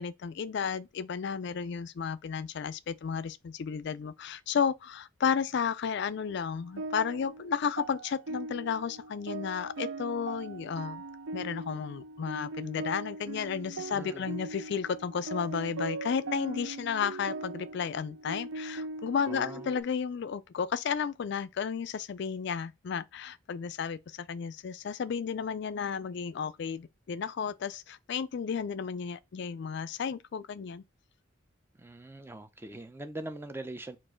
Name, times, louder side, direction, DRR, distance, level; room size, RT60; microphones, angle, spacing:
voice 1, 0.0-11.0 11.3-30.8, left 6 dB, 60° left, 0.4 m, -33 dB
sound 1, 6.3-19.8, right 2 dB, 75° right, 0.6 m, -40 dB
voice 2, 13.9-14.4 19.2-19.7 31.8-34.0, right 1 dB, 10° right, 0.5 m, -42 dB
4.3 x 2.5 x 4.3 m
head